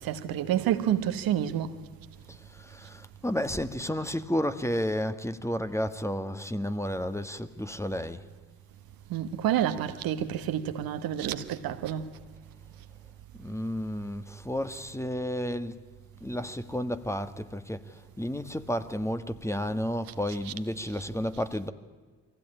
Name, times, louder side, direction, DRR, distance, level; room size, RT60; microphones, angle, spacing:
voice 1, 0.0-1.7 9.1-12.1 20.4-20.5, right 10 dB, 65° right, 1.4 m, -29 dB
voice 2, 2.3-8.2 13.4-15.8 16.2-21.7, equal, 5° left, 1.4 m, -32 dB
22.5 x 16.0 x 9.9 m
hypercardioid pair, 45°, 38 cm